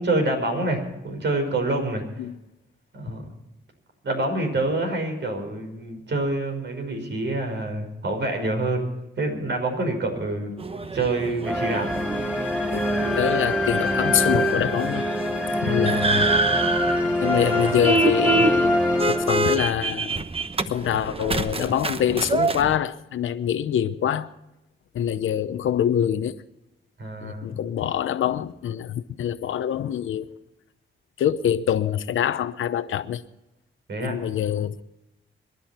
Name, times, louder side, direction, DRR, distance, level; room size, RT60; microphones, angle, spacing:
voice 1, 0.0-2.0 2.9-3.3 4.0-8.9 9.2-10.5 10.9-11.9 15.7-15.9 27.0-27.5 33.9-34.2, right 2 dB, 65° right, 5.5 m, -26 dB
sound 1, 10.6-22.8, right 3 dB, 30° right, 1.0 m, -27 dB
sound 2, 11.4-19.8, left 1 dB, 5° right, 4.4 m, -24 dB
voice 2, 13.2-15.1 15.6-16.3 17.2-18.8 19.1-20.2 20.7-24.3 24.9-26.3 27.2-30.3 31.2-33.2 34.0-34.8, left 9 dB, 90° left, 0.9 m, -25 dB
26.5 x 11.0 x 4.4 m
cardioid pair, 75°, 20 cm